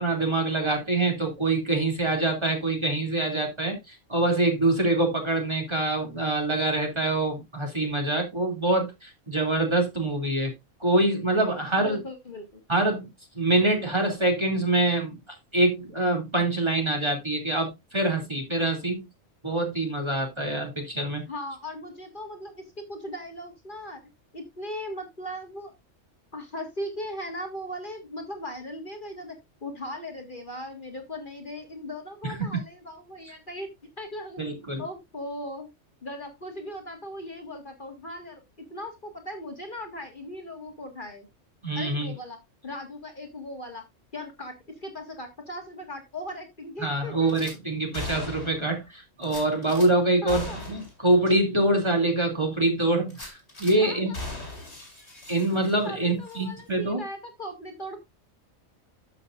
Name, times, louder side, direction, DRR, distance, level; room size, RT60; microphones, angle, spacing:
voice 1, 0.0-10.5 10.8-12.0 12.7-13.1 13.3-15.2 15.5-19.1 19.4-21.2 32.2-32.6 34.4-34.8 41.6-42.1 46.8-54.1 55.3-57.0, right 2 dB, 20° right, 2.8 m, -25 dB
voice 2, 11.8-12.6 21.3-24.0 24.3-25.7 26.3-33.7 34.0-34.4 34.8-35.7 36.0-38.4 38.7-41.3 41.8-42.4 42.6-43.8 44.1-47.3 50.2-50.8 53.7-54.2 55.8-58.0, left 1 dB, 40° left, 1.8 m, -38 dB
Gunshot gunfire / Glass, 47.3-47.6 47.9-48.7 49.2-49.9 50.3-50.9 51.3-51.4 51.8-51.9 53.1-53.8 54.1-55.9 56.3-56.4, left 2 dB, 60° left, 4.6 m, -38 dB
13.0 x 6.7 x 2.5 m
omnidirectional pair, 1.3 m